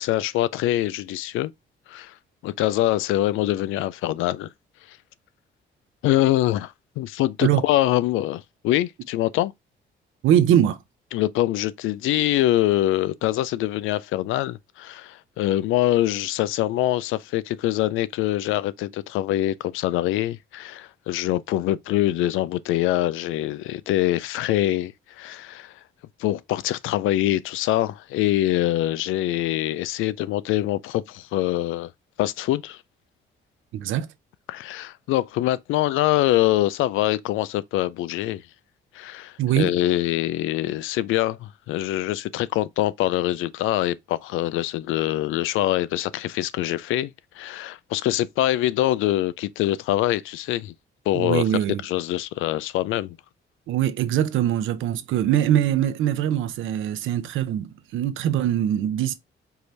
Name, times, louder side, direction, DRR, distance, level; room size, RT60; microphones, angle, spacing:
voice 1, 0.0-1.5 1.9-2.1 2.4-4.5 4.9-5.0 6.0-9.5 11.1-25.7 26.2-31.9 32.2-32.8 34.5-38.4 38.9-50.7 51.1-51.4 51.8-53.2, left 14 dB, 85° left, 0.4 m, -24 dB
voice 2, 10.2-10.8 33.7-34.1 39.4-39.7 51.1-51.8 53.7-59.1, right 11 dB, 80° right, 0.7 m, -22 dB
4.7 x 2.7 x 3.2 m
cardioid pair, 90°, 20 cm